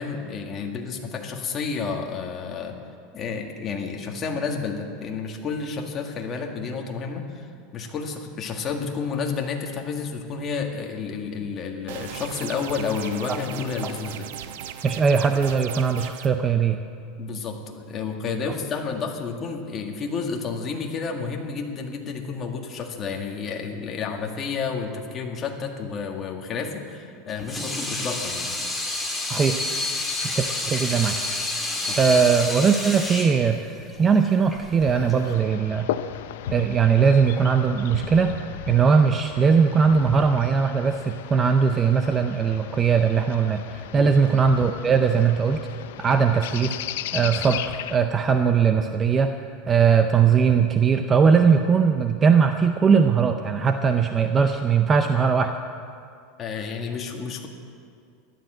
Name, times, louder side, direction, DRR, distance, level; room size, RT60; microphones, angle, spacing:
voice 1, 0.0-2.7 3.1-14.3 17.2-28.6 31.8-32.0 43.9-44.1 56.4-57.5, left 5 dB, 25° left, 2 dB, 1.9 m, -31 dB
sound 1, 11.9-16.3, right 9 dB, 70° right, 0.9 m, -37 dB
voice 2, 14.8-16.8 29.3-29.6 30.3-31.2 31.9-33.6 34.0-35.9 36.5-38.4 38.7-45.7 46.0-46.8 47.1-49.4 49.7-55.5, right 6 dB, 20° right, 7 dB, 0.6 m, -20 dB
Water tap faucet / Sink (filling or washing), 27.3-35.3, left 2 dB, 5° left, 1.9 m, -29 dB
sound 2, 34.8-48.0, left 11 dB, 80° left, 0.6 m, -36 dB
15.0 x 12.0 x 7.7 m, 2.4 s
supercardioid pair, 155°, 0 cm